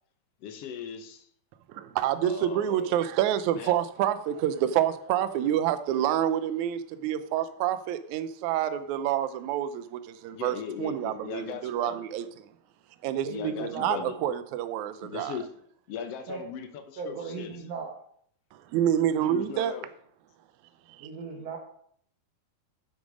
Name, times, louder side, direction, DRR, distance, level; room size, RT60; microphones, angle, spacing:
voice 1, 0.4-1.2 2.2-3.0 3.5-3.7 10.3-12.0 13.1-14.2 15.0-15.5 15.9-17.6 19.2-19.9, left 7 dB, 65° left, 1.5 m, -39 dB
voice 2, 1.7-12.5 13.0-15.4 18.5-19.7 20.9-21.1, right 11 dB, 75° right, 1.8 m, -28 dB
voice 3, 13.1-14.0 16.3-16.4 17.0-18.0 21.0-21.6, right 4 dB, 60° right, 1.9 m, -37 dB
9.6 x 8.0 x 5.0 m
omnidirectional pair, 4.1 m